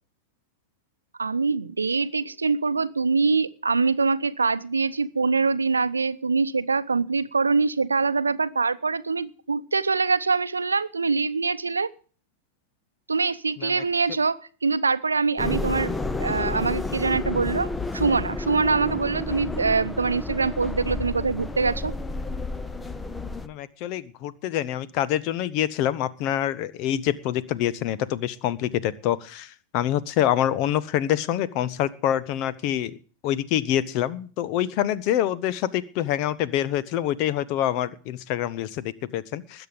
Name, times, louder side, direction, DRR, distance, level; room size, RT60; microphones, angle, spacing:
voice 1, 1.2-11.9 13.1-15.9 16.2-21.9, right 4 dB, 75° right, 15 dB, 0.8 m, -24 dB
sound 1, 15.4-23.5, left 3 dB, 10° left, 0.8 m, -31 dB
voice 2, 23.4-33.0 33.2-39.7, left 11 dB, 45° left, 18 dB, 0.9 m, -26 dB
20.5 x 8.1 x 5.2 m, 0.39 s
figure-of-eight pair, 90°, 0 cm